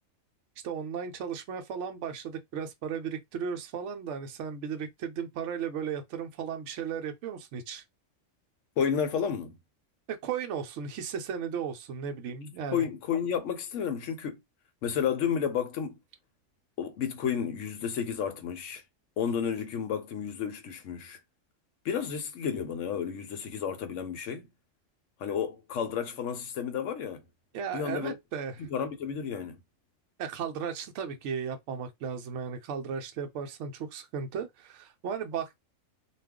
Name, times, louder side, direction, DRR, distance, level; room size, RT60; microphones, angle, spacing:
voice 1, 0.6-7.8 10.1-12.9 27.5-28.7 30.2-35.6, right 7 dB, 70° right, 0.9 m, -35 dB
voice 2, 8.8-9.6 12.7-14.4 14.8-16.0 16.8-18.8 19.2-21.2 21.8-24.5 25.2-27.2 27.7-28.2 28.6-29.6, left 7 dB, 70° left, 1.0 m, -31 dB
2.4 x 2.3 x 3.5 m
omnidirectional pair, 1.4 m